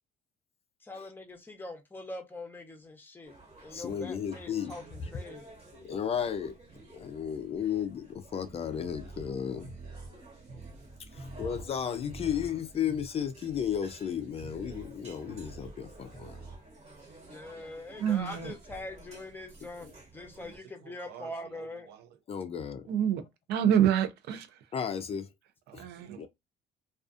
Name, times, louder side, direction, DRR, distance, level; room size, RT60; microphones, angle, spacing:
voice 1, 0.8-3.3 3.6-5.5 17.3-21.9, left 2 dB, 10° left, 0.7 m, -43 dB
sound 1, 3.2-20.6, right 2 dB, 40° right, 1.3 m, -53 dB
voice 2, 3.7-4.7 5.7-6.6 6.9-9.7 11.1-16.5 22.3-22.8 24.7-25.3 25.7-25.9 26.2-26.3, left 8 dB, 35° left, 0.4 m, -34 dB
sound 2, 8.3-16.6, right 2 dB, 60° right, 1.1 m, -47 dB
voice 3, 18.0-18.5 21.1-21.3 22.9-23.2 23.5-24.5 25.7-26.3, right 9 dB, 75° right, 0.5 m, -27 dB
2.4 x 2.3 x 2.4 m
cardioid pair, 110°, 17 cm